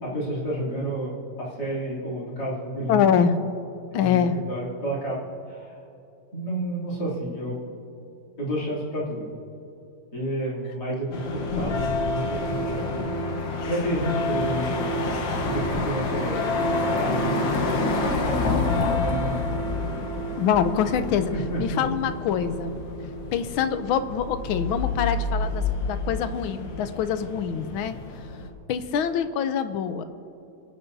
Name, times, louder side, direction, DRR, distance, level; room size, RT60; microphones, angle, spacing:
voice 1, 0.0-3.0 4.0-5.2 5.5-5.7 6.3-7.6 8.4-9.3 10.1-13.1 13.7-15.1 15.5-17.8 19.0-19.5 21.3-21.8, right 1 dB, 55° left, -6 dB, 3.5 m, -30 dB
voice 2, 2.9-3.4 3.9-4.4 20.4-21.3 21.6-22.7 23.3-27.9 28.7-30.0, left 8 dB, 90° left, 11 dB, 1.5 m, -24 dB
sound 1, 11.1-28.5, left 2 dB, 70° left, 1.8 m, -28 dB
28.0 x 9.5 x 2.7 m, 2.9 s
omnidirectional pair, 2.2 m